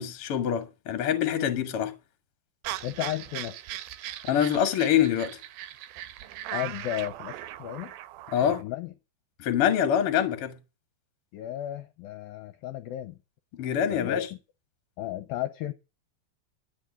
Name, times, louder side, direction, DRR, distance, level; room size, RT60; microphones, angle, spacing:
voice 1, 0.0-1.9 4.3-5.4 8.3-8.6 9.4-10.6 13.5-14.3, left 9 dB, 50° left, 1.7 m, -25 dB
sound 1, 2.6-8.6, right 13 dB, 75° right, 2.3 m, -39 dB
voice 2, 2.8-3.6 6.5-7.9 8.6-8.9 11.3-13.2 13.9-14.3 15.0-15.7, left 13 dB, 75° left, 2.2 m, -34 dB
11.5 x 6.8 x 9.6 m
omnidirectional pair, 4.9 m